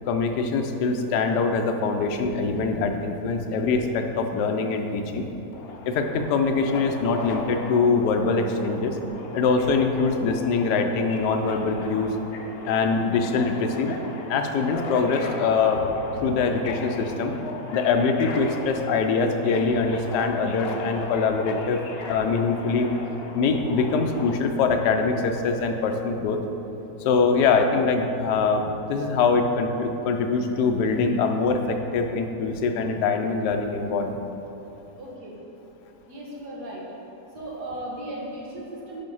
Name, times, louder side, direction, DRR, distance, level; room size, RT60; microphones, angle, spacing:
voice 1, 0.1-5.3 5.9-8.9 9.3-12.1 12.7-13.9 14.3-15.8 16.2-17.3 17.7-21.8 22.1-22.9 23.3-26.4 27.0-34.2, left 4 dB, 90° left, 5 dB, 1.2 m, -23 dB
Subway metro underground, 5.5-24.3, left 3 dB, 65° left, 0.6 m, -37 dB
voice 2, 35.0-35.3 36.1-36.8 37.3-39.0, right 1 dB, 85° right, -5 dB, 1.9 m, -36 dB
5.5 x 5.2 x 5.4 m, 2.9 s
omnidirectional pair, 1.7 m